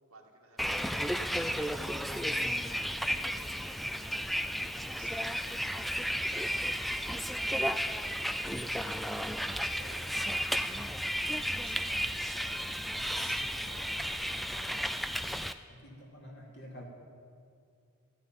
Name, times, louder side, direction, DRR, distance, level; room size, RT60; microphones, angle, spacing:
voice 1, 0.1-12.6 13.1-15.1, right 3 dB, 80° right, 1 dB, 2.2 m, -59 dB
Bus, 0.6-15.5, equal, ahead, 0.3 m, -33 dB
voice 2, 15.7-16.8, equal, 50° left, -1 dB, 2.9 m, -48 dB
14.0 x 9.2 x 9.4 m, 2.3 s
head